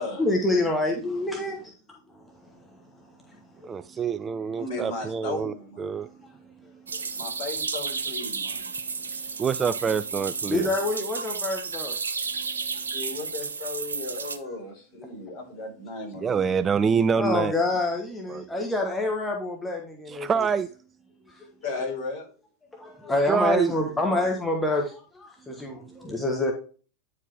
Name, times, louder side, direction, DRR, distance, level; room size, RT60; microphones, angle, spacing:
voice 1, 0.2-1.6 2.4-2.5 3.6-3.8 6.0-6.1 10.5-12.0 17.2-20.5 21.3-21.5 22.8-26.5, left 2 dB, 10° left, 1.3 m, -27 dB
voice 2, 3.7-6.1 9.4-10.7 16.2-17.5 18.3-18.4 20.1-20.7 23.3-23.7 25.5-26.0, right 6 dB, 20° right, 0.3 m, -26 dB
voice 3, 4.6-6.0 7.1-8.6 12.9-16.6 21.6-22.3, left 3 dB, 45° left, 4.6 m, -35 dB
sound 1, 6.9-14.4, right 5 dB, 75° right, 0.7 m, -32 dB
9.7 x 4.6 x 3.5 m
figure-of-eight pair, 90°, 0 cm